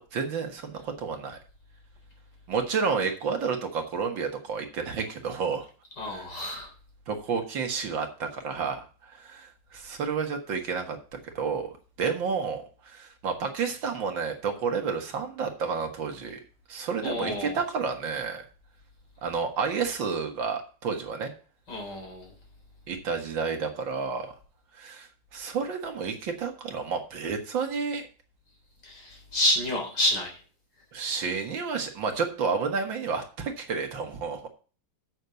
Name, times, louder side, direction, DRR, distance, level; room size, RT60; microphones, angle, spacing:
voice 1, 0.0-1.4 2.5-5.7 6.1-6.3 7.1-11.7 12.0-16.4 16.7-18.5 19.2-21.3 22.9-24.3 24.7-28.0 30.9-34.5, right 5 dB, 65° right, 2.5 m, -30 dB
voice 2, 6.0-6.7 17.0-17.6 21.7-22.3 28.8-30.3, left 1 dB, 55° left, 4.4 m, -29 dB
8.0 x 6.5 x 7.0 m
omnidirectional pair, 2.2 m